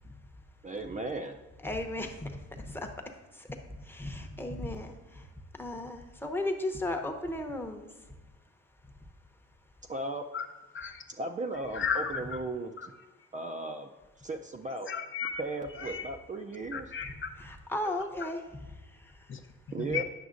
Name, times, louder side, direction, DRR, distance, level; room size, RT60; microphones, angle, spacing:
voice 1, 0.6-1.4 9.9-10.2 11.2-12.9 13.3-13.9 14.2-14.9 15.4-16.9 19.7-20.0, right 2 dB, 25° right, 4 dB, 0.4 m, -36 dB
voice 2, 1.6-8.1 8.9-9.1 17.0-19.6, left 1 dB, 5° left, 4 dB, 0.7 m, -37 dB
voice 3, 11.7-12.2 12.8-12.9 14.9-15.4 15.8-16.1 16.7-17.3 19.3-19.4 19.9-20.0, left 6 dB, 40° left, 4 dB, 0.6 m, -34 dB
9.3 x 6.0 x 2.5 m, 1.1 s
cardioid pair, 90°, 30 cm